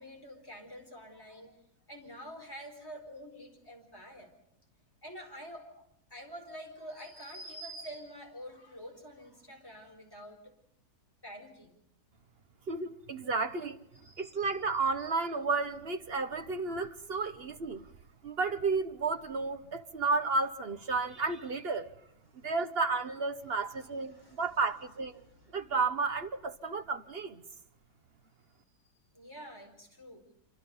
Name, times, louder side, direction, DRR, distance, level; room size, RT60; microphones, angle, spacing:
voice 1, 0.0-1.6 1.9-4.3 5.0-5.7 6.1-10.5 11.2-11.7 14.0-14.4 22.4-22.5 24.1-24.7 25.2-25.5 29.1-30.2, equal, 15° left, 4.7 m, -47 dB
voice 2, 12.7-13.8 14.2-17.8 18.2-21.9 22.4-25.2 25.5-27.4, right 4 dB, 40° right, 1.1 m, -32 dB
27.0 x 25.0 x 5.4 m
omnidirectional pair, 1.8 m